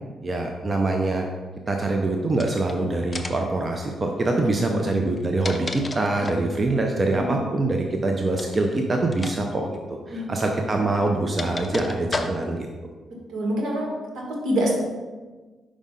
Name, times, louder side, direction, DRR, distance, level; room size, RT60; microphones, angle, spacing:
voice 1, 0.2-1.3 1.7-12.7, right 2 dB, 30° right, 2 dB, 0.6 m, -24 dB
sound 1, 2.3-2.7 3.1-3.5 5.0-6.5 8.3-8.6 9.1-9.4 9.6-9.8 10.7-12.7, left 3 dB, 25° left, 0.5 m, -33 dB
voice 2, 4.4-5.1 7.1-7.4 10.1-10.3 13.3-13.9 14.3-14.7, right 1 dB, 75° right, -1 dB, 1.6 m, -27 dB
5.3 x 5.0 x 3.7 m, 1.3 s
cardioid pair, 95°, 0 cm